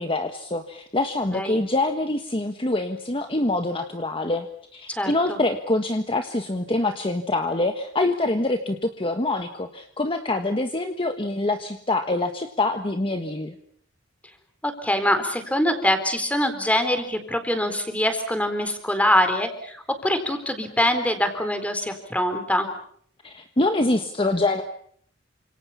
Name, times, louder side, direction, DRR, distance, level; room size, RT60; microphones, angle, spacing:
voice 1, 0.0-4.5 4.7-13.5 23.2-24.6, left 2 dB, 30° left, 6 dB, 1.4 m, -25 dB
voice 2, 4.9-5.4 14.6-22.7, left 1 dB, 5° left, 8 dB, 4.0 m, -24 dB
29.5 x 27.0 x 5.7 m, 0.62 s
head